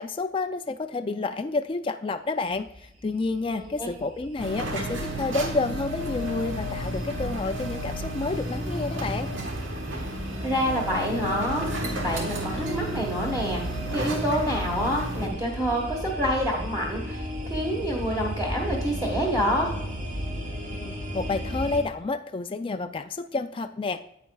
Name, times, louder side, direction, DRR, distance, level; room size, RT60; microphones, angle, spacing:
voice 1, 0.0-9.3 20.7-24.0, left 3 dB, 25° left, 7 dB, 0.3 m, -30 dB
sound 1, 2.5-21.8, equal, 40° right, 2.8 m, -35 dB
voice 2, 3.6-3.9 10.4-11.6 12.0-13.6 13.9-19.7, equal, 15° right, -3 dB, 1.4 m, -27 dB
sound 2, 4.4-15.3, right 1 dB, 75° right, 1.4 m, -33 dB
10.0 x 8.3 x 2.3 m, 0.79 s
head